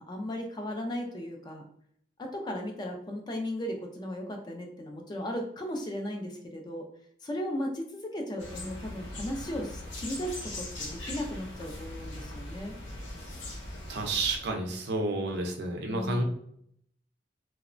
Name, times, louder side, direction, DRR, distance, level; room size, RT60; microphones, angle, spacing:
voice 1, 0.0-1.6 2.2-6.9 7.2-12.7 15.9-16.2, equal, 20° left, 2 dB, 0.3 m, -36 dB
sound 1, 8.4-14.4, left 1 dB, 80° left, 0.6 m, -40 dB
voice 2, 13.9-16.2, right 2 dB, 60° right, 3 dB, 0.5 m, -30 dB
2.8 x 2.0 x 2.5 m, 0.68 s
head